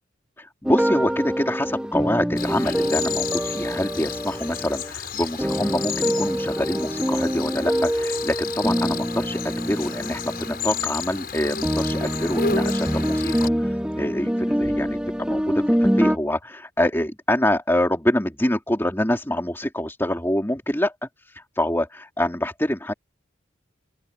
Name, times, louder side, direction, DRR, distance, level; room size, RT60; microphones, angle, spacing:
voice 1, 0.4-20.9 21.2-22.9, left 1 dB, 10° left, 2.9 m, -26 dB
sound 1, 0.6-4.9 5.4-11.0 11.6-16.2, equal, 5° right, 1.5 m, -25 dB
Cricket, 2.4-13.5, left 6 dB, 50° left, 5.5 m, -32 dB
open air
head